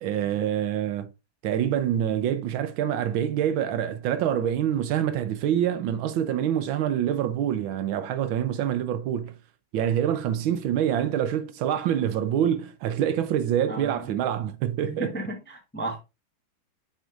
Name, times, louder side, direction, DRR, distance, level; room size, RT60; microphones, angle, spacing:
voice 1, 0.0-1.1 1.4-9.3 9.7-15.2, right 10 dB, 80° right, 1.5 m, -26 dB
voice 2, 13.7-14.1 14.8-16.0, right 2 dB, 10° left, 0.7 m, -34 dB
8.2 x 4.7 x 2.5 m
omnidirectional pair, 2.2 m